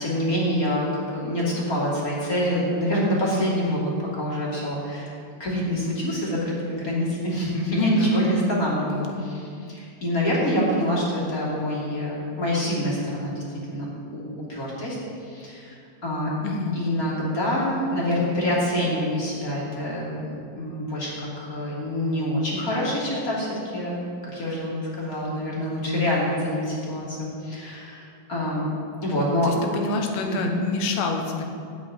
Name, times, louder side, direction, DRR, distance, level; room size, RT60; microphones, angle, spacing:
voice 1, 0.0-5.1 5.4-9.4 9.7-15.0 15.2-16.3 16.7-20.3 20.5-24.0 24.3-28.6 29.0-29.5 30.2-30.5, equal, 25° left, -5 dB, 2.4 m, -26 dB
voice 2, 7.7-8.2 8.9-9.3 16.4-16.8 29.4-31.4, left 3 dB, 85° left, 3 dB, 3.5 m, -28 dB
15.0 x 5.3 x 9.7 m, 2.4 s
omnidirectional pair, 5.0 m